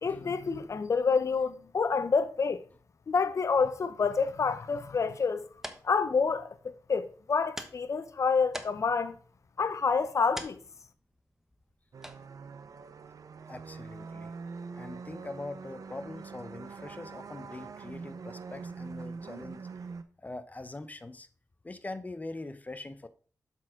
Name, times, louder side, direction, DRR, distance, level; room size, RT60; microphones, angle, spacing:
voice 1, 0.0-2.6 3.1-5.5 5.8-9.2 9.6-10.6, left 5 dB, 55° left, 0.8 m, -28 dB
sound 1, 5.2-14.4, equal, 5° right, 1.1 m, -49 dB
sound 2, 11.9-20.0, right 5 dB, 65° right, 0.7 m, -44 dB
voice 2, 13.5-14.3 14.7-19.7 20.2-21.3 21.6-23.1, left 2 dB, 25° left, 0.8 m, -42 dB
7.3 x 6.2 x 3.7 m
cardioid pair, 70°, 6 cm